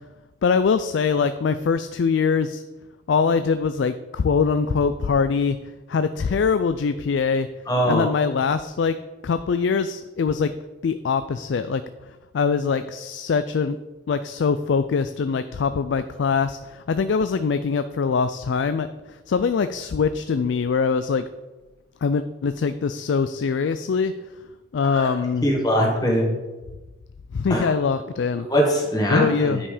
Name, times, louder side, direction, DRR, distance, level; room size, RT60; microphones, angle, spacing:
voice 1, 0.4-2.6 3.1-7.5 7.9-10.5 10.8-11.8 12.3-13.8 14.1-21.3 22.0-24.1 24.7-25.5 27.3-28.5 29.1-29.6, left 5 dB, 75° left, 11 dB, 0.4 m, -23 dB
voice 2, 7.7-8.0 24.9-25.1 25.4-26.4 27.5-27.7 28.5-29.7, equal, 20° left, -1 dB, 1.8 m, -21 dB
9.6 x 5.6 x 5.0 m, 1.2 s
head